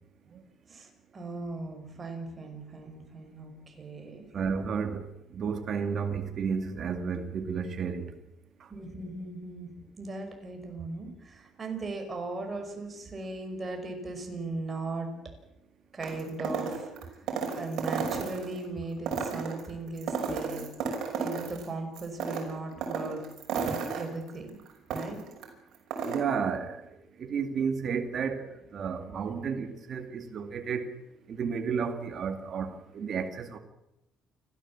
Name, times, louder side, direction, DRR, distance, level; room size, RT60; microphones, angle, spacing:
voice 1, 0.7-4.3 8.7-9.7 10.0-15.1 15.9-17.2 17.5-20.7 21.1-23.2 23.9-24.6 24.9-25.2, right 2 dB, 25° right, 4 dB, 5.7 m, -38 dB
voice 2, 4.3-5.1 5.3-8.1 26.0-26.8 27.2-30.8 31.3-33.6, right 6 dB, 45° right, 5 dB, 2.3 m, -32 dB
sound 1, 16.0-18.6 19.0-21.7 22.0-25.4 25.7-26.2, right 5 dB, 70° right, 5.8 m, -33 dB
29.0 x 13.5 x 7.4 m, 0.89 s
cardioid pair, 120°, 0 cm